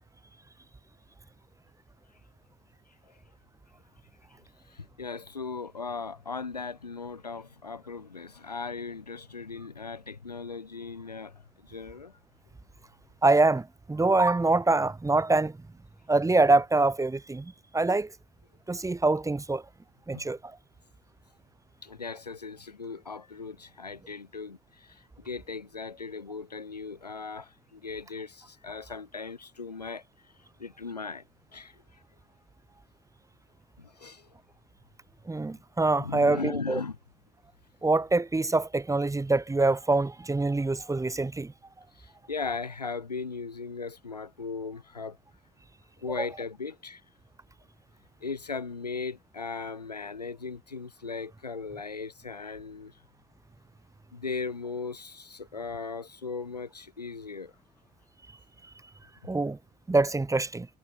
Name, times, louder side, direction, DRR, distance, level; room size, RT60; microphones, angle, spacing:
voice 1, 4.6-12.2 20.1-20.3 21.8-30.3 30.6-31.2 31.5-32.0 33.8-34.3 36.0-37.0 41.9-45.2 46.0-47.0 48.2-53.0 54.1-57.5, left 4 dB, 85° left, 6.3 m, -38 dB
voice 2, 13.2-15.6 16.1-18.1 18.7-19.6 20.1-20.6 35.3-36.8 37.8-41.5 46.2-46.3 59.3-59.6 59.9-60.7, right 3 dB, 15° right, 2.8 m, -25 dB
figure-of-eight pair, 50°, 20 cm